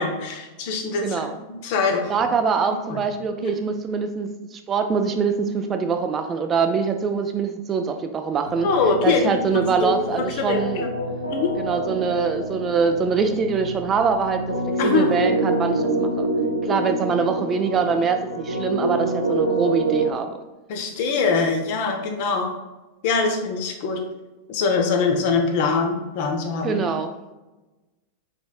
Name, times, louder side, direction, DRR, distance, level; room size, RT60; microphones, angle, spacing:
voice 1, 0.0-1.2 1.5-2.2 2.9-3.0 3.4-3.5 8.6-10.9 11.3-11.5 14.8-15.2 20.7-22.5 23.0-24.0 24.5-26.8, left 4 dB, 50° left, 3 dB, 0.7 m, -23 dB
voice 2, 1.0-1.4 2.1-8.7 9.0-10.9 11.6-14.6 14.8-16.3 16.6-20.3 26.6-27.3, right 5 dB, 25° right, 6 dB, 0.4 m, -24 dB
sound 1, 8.5-20.1, right 2 dB, 85° right, 0.6 m, -27 dB
4.6 x 4.1 x 2.4 m, 1.1 s
figure-of-eight pair, 90°, 0 cm